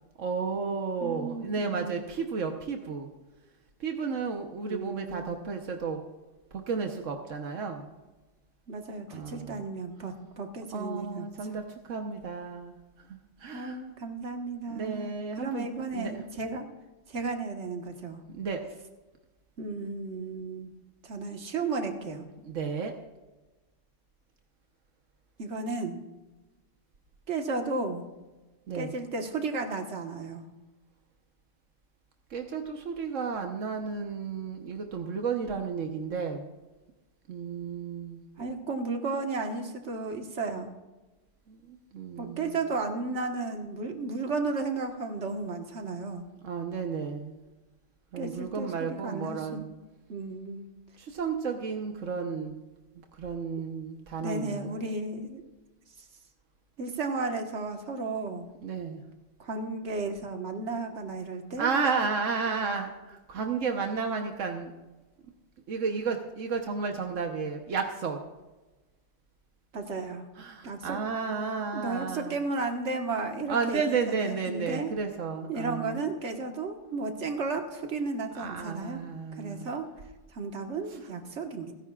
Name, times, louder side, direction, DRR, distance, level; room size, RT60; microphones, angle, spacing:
voice 1, 0.2-3.1 3.8-6.0 6.5-7.9 9.1-9.6 10.7-12.8 13.1-13.8 14.7-16.1 18.3-18.6 22.4-22.9 28.7-28.9 32.3-36.5 37.3-38.3 41.5-42.6 46.4-47.4 48.1-49.7 51.0-52.6 53.2-54.8 58.6-59.0 61.6-64.7 65.7-68.2 70.4-72.4 73.5-76.0 78.3-79.7, right 5 dB, 90° right, 3 dB, 1.4 m, -32 dB
voice 2, 1.0-2.0 4.6-5.4 8.7-11.3 13.5-16.7 17.1-18.2 19.6-20.7 21.0-22.2 25.4-26.0 27.3-28.1 28.7-30.5 38.4-40.7 42.2-46.2 48.2-49.7 50.1-50.7 54.2-55.4 56.8-58.5 59.4-61.7 69.7-70.2 70.6-71.0 71.7-74.9 75.5-79.0 79.4-79.9 80.3-81.7, right 3 dB, 65° right, 4 dB, 1.8 m, -34 dB
30.0 x 10.5 x 2.4 m, 1.1 s
omnidirectional pair, 1.3 m